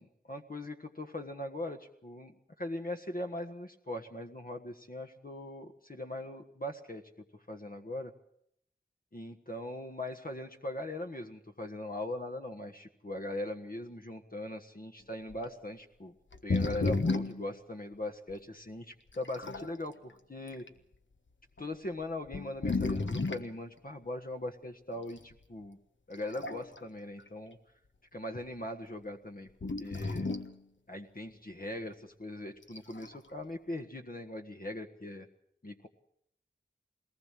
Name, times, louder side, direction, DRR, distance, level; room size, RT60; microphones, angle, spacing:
voice 1, 0.0-7.0 7.5-8.1 9.1-16.1 16.4-20.7 21.6-25.8 26.1-27.6 28.1-30.3 30.9-35.3 35.6-35.9, left 1 dB, 45° left, 4 dB, 1.6 m, -40 dB
sound 1, 15.3-15.4 16.3-17.5 18.3-18.4 19.1-19.7 20.5-20.7 21.6-21.7 22.3-23.5 25.2-25.3 26.1-26.8 27.2-27.3 29.6-30.6 32.6-33.2, left 3 dB, 75° left, 1.5 m, -33 dB
21.5 x 19.0 x 7.6 m, 0.73 s
wide cardioid pair, 40°, 20 cm